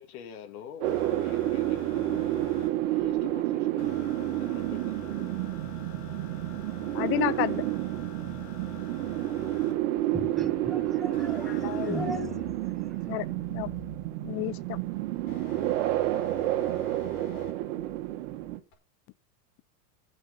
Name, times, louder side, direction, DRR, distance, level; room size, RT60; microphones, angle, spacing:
voice 1, 0.0-2.3 2.9-5.3, left 9 dB, 70° left, 2.3 m, -46 dB
sound 1, 0.8-2.7 3.8-9.7 11.1-14.1 15.3-17.5 18.7-18.8, left 7 dB, 55° left, 5.6 m, -46 dB
sound 2, 0.8-18.6, right 15 dB, 55° right, 1.8 m, -30 dB
voice 2, 6.9-7.6 11.5-12.3 13.1-13.7 14.2-14.8, left 17 dB, 30° left, 0.6 m, -31 dB
voice 3, 9.5-13.2, right 1 dB, ahead, 1.3 m, -39 dB
14.0 x 6.4 x 5.6 m
supercardioid pair, 145°, 44 cm